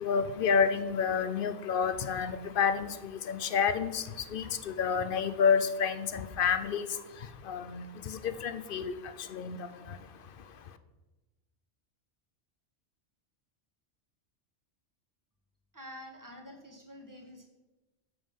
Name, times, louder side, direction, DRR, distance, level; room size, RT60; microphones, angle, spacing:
voice 1, 0.0-10.8, left 6 dB, 55° left, 12 dB, 0.8 m, -30 dB
voice 2, 15.7-17.5, left 1 dB, 15° right, 1 dB, 1.6 m, -48 dB
8.0 x 7.0 x 5.5 m, 1.1 s
omnidirectional pair, 1.2 m